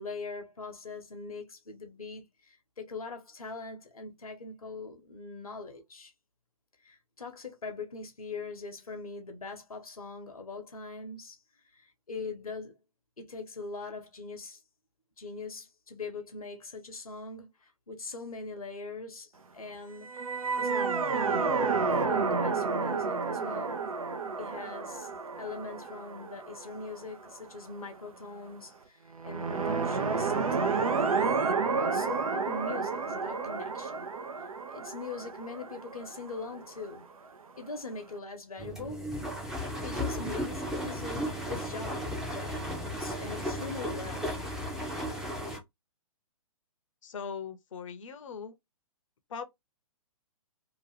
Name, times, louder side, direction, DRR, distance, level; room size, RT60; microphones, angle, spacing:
voice 1, 0.0-6.1 6.8-11.4 11.7-12.7 13.2-14.6 15.2-21.8 22.0-23.8 24.4-25.1 25.4-31.0 31.8-34.0 34.7-37.1 37.6-39.1 39.8-42.7 43.0-44.3, left 4 dB, 80° left, 1.0 m, -42 dB
sound 1, 20.0-27.3 29.2-37.0, right 4 dB, 75° right, 0.7 m, -31 dB
sound 2, 38.6-45.6, equal, ahead, 0.6 m, -35 dB
voice 2, 47.0-48.5 49.3-49.4, left 6 dB, 60° left, 0.7 m, -40 dB
2.9 x 2.5 x 2.9 m
figure-of-eight pair, 125°, 18 cm